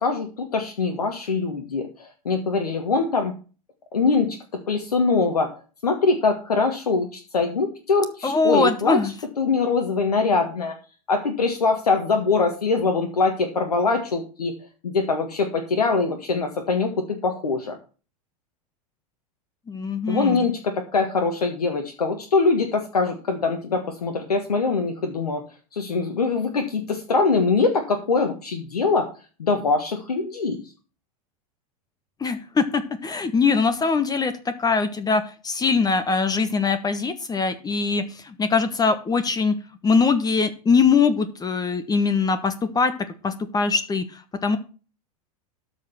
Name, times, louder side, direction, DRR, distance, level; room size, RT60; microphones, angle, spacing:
voice 1, 0.0-3.3 3.9-4.4 4.7-5.5 5.8-10.7 11.1-14.5 14.8-17.8 20.1-25.4 25.7-29.1 29.4-30.6, left 4 dB, 80° left, 5 dB, 1.6 m, -23 dB
voice 2, 8.2-9.1 19.7-20.5 32.2-39.5 39.8-42.9 43.2-44.6, left 4 dB, 20° left, 12 dB, 1.2 m, -22 dB
13.0 x 5.1 x 5.7 m, 0.35 s
hypercardioid pair, 90°, 19 cm